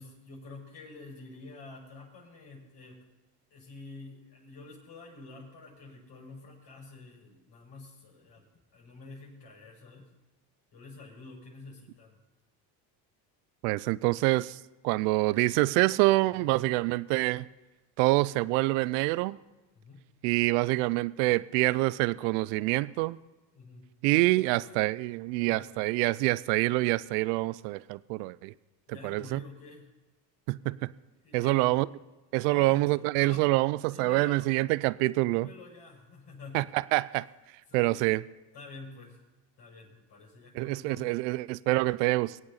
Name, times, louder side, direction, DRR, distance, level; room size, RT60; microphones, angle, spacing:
voice 1, 0.0-3.0 3.5-8.4 8.7-10.1 10.7-12.2 16.4-16.5 19.7-20.1 23.5-23.8 24.3-24.9 25.4-25.8 28.9-29.9 31.2-31.8 32.4-32.8 33.1-33.5 33.9-34.5 35.3-36.7 37.7-38.1 38.5-39.2 39.6-41.2, left 3 dB, 55° left, -2 dB, 5.9 m, -48 dB
voice 2, 13.6-14.6 14.8-17.5 18.0-19.4 20.2-23.2 24.0-28.5 29.0-29.4 30.5-30.9 31.3-31.9 32.3-35.5 36.5-37.3 37.7-38.2 40.5-42.4, right 20 dB, 75° right, 19 dB, 0.6 m, -26 dB
22.5 x 8.7 x 4.1 m, 1.1 s
hypercardioid pair, 70°, 49 cm